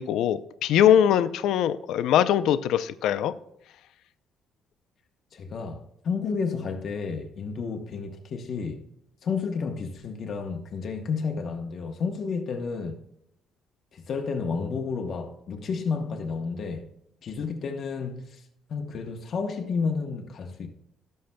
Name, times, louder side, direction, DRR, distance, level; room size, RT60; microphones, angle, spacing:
voice 1, 0.0-3.3, left 10 dB, 80° left, 0.4 m, -22 dB
voice 2, 5.3-8.8 9.2-13.0 13.9-16.9 17.2-18.4 18.7-20.7, left 5 dB, 45° left, 0.9 m, -31 dB
17.5 x 6.5 x 2.2 m
cardioid pair, 150°, 0 cm